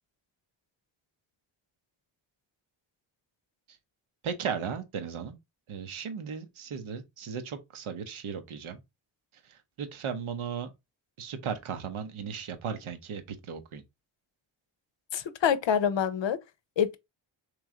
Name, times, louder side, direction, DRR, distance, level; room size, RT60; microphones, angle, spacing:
voice 1, 4.2-5.4 5.7-8.8 9.4-10.7 11.2-13.8, right 7 dB, 75° right, 0.9 m, -36 dB
voice 2, 15.1-16.4 16.8-17.0, left 8 dB, 65° left, 0.7 m, -26 dB
3.1 x 3.0 x 3.6 m
cardioid pair, 50°, 49 cm